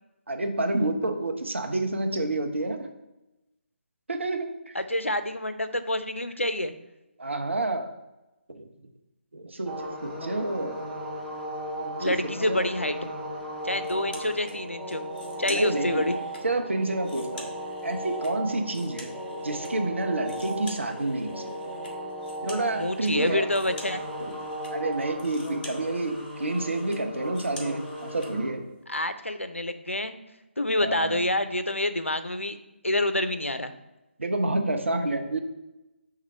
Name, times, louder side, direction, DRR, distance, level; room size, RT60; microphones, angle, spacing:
voice 1, 0.3-2.9 4.1-4.5 7.2-7.9 8.5-8.6 9.3-10.8 11.8-12.2 12.5-12.7 15.5-16.0 16.4-17.5 17.8-19.1 19.4-21.5 22.4-23.5 24.2-24.3 24.7-28.6 30.8-31.2 34.2-35.4, right 2 dB, 70° right, 4 dB, 1.0 m, -29 dB
voice 2, 4.7-6.7 12.0-12.9 13.6-15.0 15.4-16.2 22.8-24.0 28.9-30.2 30.6-32.6 32.8-33.7, left 1 dB, 90° left, 10 dB, 0.6 m, -27 dB
sound 1, 9.7-28.5, equal, 5° left, 0.7 m, -36 dB
sound 2, 13.8-14.6 14.9-16.4 16.8-19.7 20.0-28.3, left 2 dB, 45° left, 1.5 m, -47 dB
4.8 x 3.6 x 5.5 m, 0.99 s
figure-of-eight pair, 145°, 7 cm